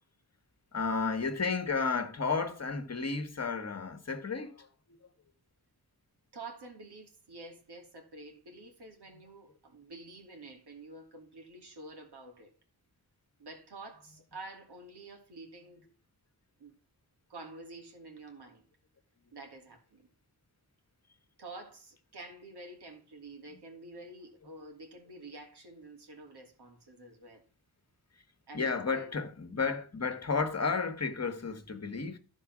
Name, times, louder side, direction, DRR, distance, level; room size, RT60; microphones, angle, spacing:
voice 1, 0.7-5.0 28.5-32.2, left 4 dB, 40° left, 1.5 m, -32 dB
voice 2, 6.3-12.5 13.4-15.9 16.6-16.7 17.3-18.6 19.3-20.1 21.4-27.4 28.5-29.1, right 2 dB, 85° right, 2.9 m, -49 dB
13.0 x 4.9 x 6.1 m
wide cardioid pair, 85°, 39 cm